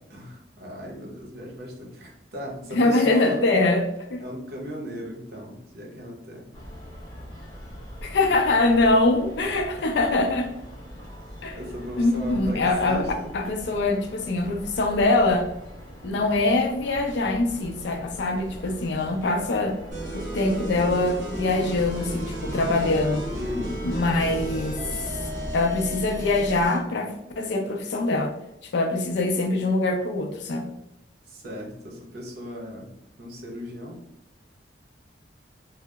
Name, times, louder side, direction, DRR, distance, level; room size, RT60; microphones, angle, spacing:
voice 1, 0.1-3.4 4.2-6.5 8.5-8.6 9.8-9.9 11.5-13.3 23.3-23.8 31.3-32.9 33.2-34.0, equal, 60° right, -1 dB, 0.7 m, -36 dB
voice 2, 2.7-4.2 8.0-10.5 11.4-11.6 12.0-13.0 13.3-15.5 16.0-19.8 20.1-23.3 23.8-25.1 25.5-28.3 28.6-30.7, left 2 dB, 70° left, 4 dB, 0.4 m, -23 dB
sound 1, 6.5-25.5, equal, 20° left, 1.4 m, -41 dB
sound 2, 19.9-26.8, equal, 45° right, 1.0 m, -33 dB
2.7 x 2.0 x 2.2 m, 0.84 s
head